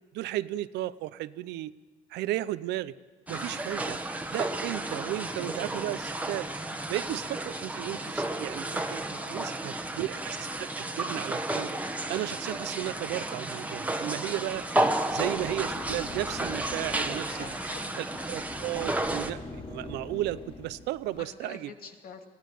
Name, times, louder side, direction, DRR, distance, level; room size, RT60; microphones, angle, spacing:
voice 1, 0.1-1.7 2.1-2.9 3.3-4.0 4.3-6.5 6.9-11.8 12.1-14.7 15.1-17.4 18.0-21.7, right 15 dB, 85° right, 15 dB, 0.7 m, -34 dB
sound 1, 3.3-19.3, right 1 dB, 10° right, 1.3 m, -32 dB
voice 2, 9.2-10.0 17.3-18.2 21.0-22.2, left 5 dB, 60° left, 3 dB, 2.7 m, -47 dB
sound 2, 14.5-21.2, left 2 dB, 35° left, 3.8 m, -44 dB
22.5 x 16.0 x 9.3 m, 1.5 s
cardioid pair, 110°, 17 cm